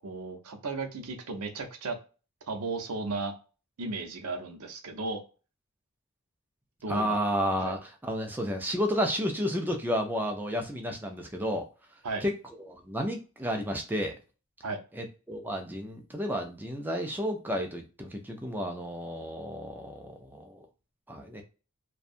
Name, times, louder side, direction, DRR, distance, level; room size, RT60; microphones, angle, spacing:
voice 1, 0.0-2.0 2.5-3.3 3.8-5.2 6.8-7.2 7.6-7.8 12.0-12.2 14.6-14.8, right 3 dB, 75° right, 5 dB, 0.6 m, -35 dB
voice 2, 6.9-11.7 12.2-12.3 12.7-14.2 14.9-20.7 21.1-21.4, equal, 10° right, 3 dB, 0.4 m, -31 dB
2.6 x 2.2 x 2.4 m, 0.35 s
head